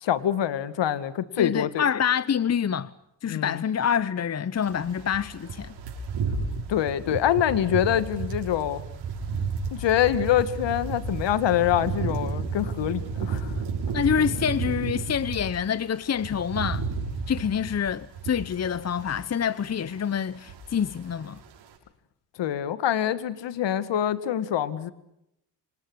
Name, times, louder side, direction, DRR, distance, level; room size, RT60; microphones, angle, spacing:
voice 1, 0.0-1.9 3.3-3.6 6.7-8.8 9.7-13.5 22.4-24.9, left 11 dB, 60° left, 2.2 m, -25 dB
voice 2, 1.4-2.9 3.2-5.7 13.9-16.9 17.3-21.4, left 8 dB, 30° left, 1.0 m, -26 dB
sound 1, 4.6-15.6 15.9-19.3 19.6-19.9 20.2-21.0 21.2-21.4, right 5 dB, 70° right, 7.3 m, -32 dB
28.5 x 27.0 x 6.4 m
hypercardioid pair, 50°, 48 cm